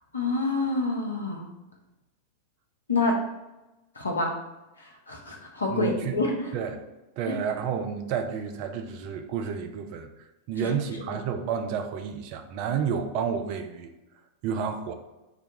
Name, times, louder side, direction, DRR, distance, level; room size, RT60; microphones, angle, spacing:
voice 1, 0.1-1.5 2.9-3.2 4.0-4.3 5.1-6.5 7.3-7.4 10.6-10.7 11.0-11.2, left 3 dB, 75° left, 1 dB, 0.7 m, -27 dB
voice 2, 5.7-6.2 6.5-6.8 7.2-13.9 14.4-14.9, right 7 dB, 45° right, 6 dB, 0.4 m, -30 dB
5.9 x 2.2 x 2.8 m, 1.0 s
figure-of-eight pair, 90°, 0 cm